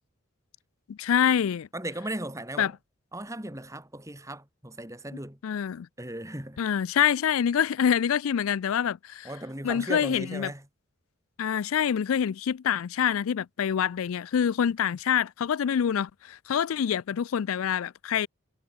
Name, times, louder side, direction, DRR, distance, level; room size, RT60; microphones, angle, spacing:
voice 1, 0.9-1.7 2.6-2.7 5.4-5.9 6.6-9.3 9.6-10.5 11.4-18.3, left 8 dB, 85° left, 0.4 m, -26 dB
voice 2, 1.7-2.7 3.1-5.4 6.0-6.6 9.2-10.6, right 1 dB, 15° right, 3.4 m, -37 dB
head